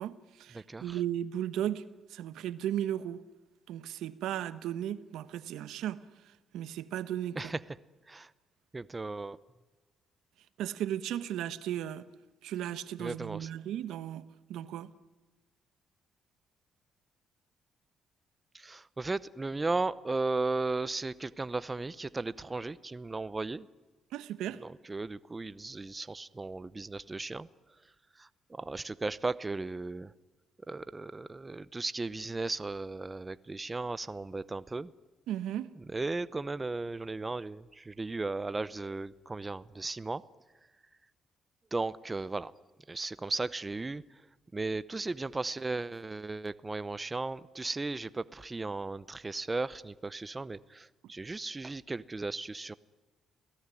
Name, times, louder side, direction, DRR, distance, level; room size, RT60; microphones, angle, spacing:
voice 1, 0.0-1.8 2.1-3.2 3.7-6.0 6.5-7.5 10.6-12.1 12.4-14.9 24.1-24.6 35.3-35.7, right 11 dB, 85° right, 1.1 m, -35 dB
voice 2, 0.5-1.0 7.4-7.6 8.1-8.3 8.7-9.4 13.0-13.5 18.5-23.7 24.6-27.5 28.2-30.1 30.7-34.9 35.9-40.2 41.7-42.5 42.9-44.0 44.5-52.7, right 3 dB, 20° right, 0.7 m, -36 dB
28.0 x 18.0 x 9.9 m
cardioid pair, 90°, 0 cm